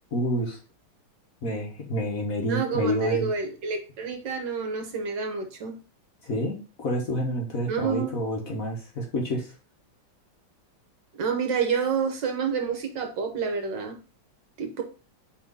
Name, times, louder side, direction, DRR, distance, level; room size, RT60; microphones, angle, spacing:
voice 1, 0.1-0.6 1.4-3.3 6.2-9.5, equal, 45° left, 0 dB, 1.4 m, -28 dB
voice 2, 2.5-5.8 7.7-8.1 11.2-14.0 14.6-14.8, right 6 dB, 65° right, 4 dB, 1.6 m, -28 dB
4.9 x 3.7 x 5.3 m, 0.34 s
omnidirectional pair, 2.3 m